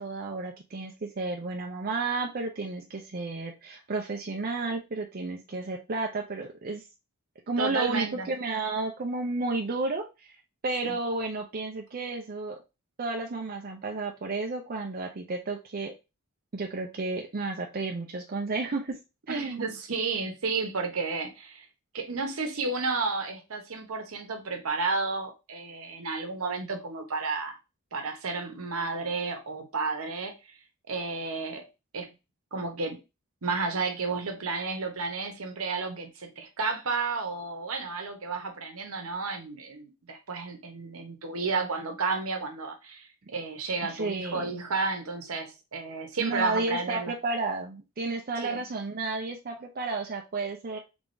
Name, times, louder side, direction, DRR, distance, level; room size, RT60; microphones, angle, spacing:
voice 1, 0.0-6.8 7.5-10.3 10.6-12.6 13.0-15.9 16.5-19.0 19.3-19.7 43.9-44.6 46.2-50.8, right 3 dB, 45° right, 1 dB, 0.5 m, -32 dB
voice 2, 7.6-8.3 10.8-11.0 19.3-21.7 21.9-27.6 27.9-30.6 30.9-31.6 31.9-32.1 32.5-33.0 33.4-47.1 48.4-48.7, right 4 dB, 70° right, 4 dB, 0.9 m, -32 dB
3.5 x 3.4 x 2.6 m, 0.26 s
head